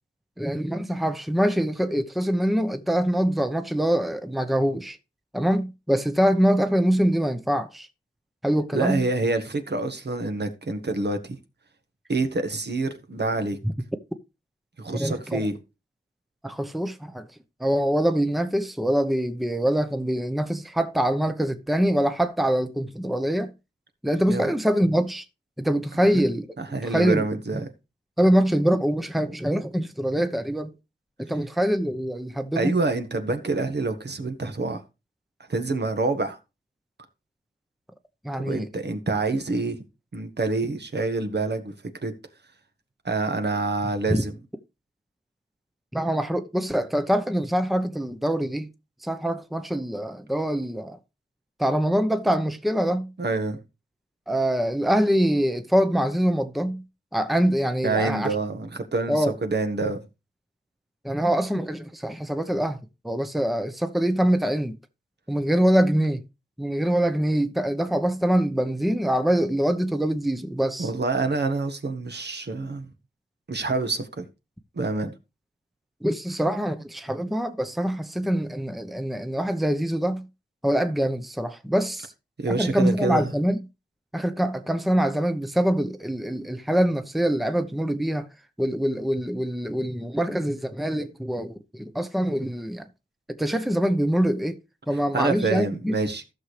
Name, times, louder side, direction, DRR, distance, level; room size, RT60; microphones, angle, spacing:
voice 1, 0.4-5.0 5.3-7.9 8.4-9.0 14.9-15.5 16.4-17.3 17.6-23.5 24.0-25.2 25.6-26.4 26.8-27.3 28.2-30.7 31.2-32.8 38.2-38.7 44.1-44.2 45.9-48.7 49.0-51.0 51.6-53.1 54.3-56.8 57.1-58.3 59.1-59.3 61.0-62.8 63.0-64.8 65.3-66.2 66.6-70.9 76.0-80.3 80.6-82.1 82.5-83.6 84.1-88.3 88.6-92.8 93.3-94.5 94.9-95.9, equal, ahead, 0.9 m, -24 dB
voice 2, 8.7-11.4 12.1-13.6 14.8-15.6 24.3-24.5 26.1-26.2 26.6-27.7 32.5-34.8 35.5-36.4 38.4-39.8 40.1-41.7 42.0-42.1 43.0-44.3 53.2-53.6 57.8-60.0 70.8-72.9 73.5-74.3 74.7-75.1 82.4-83.3 95.1-96.2, right 3 dB, 60° right, 1.5 m, -27 dB
14.5 x 6.4 x 3.3 m
wide cardioid pair, 65°, 20 cm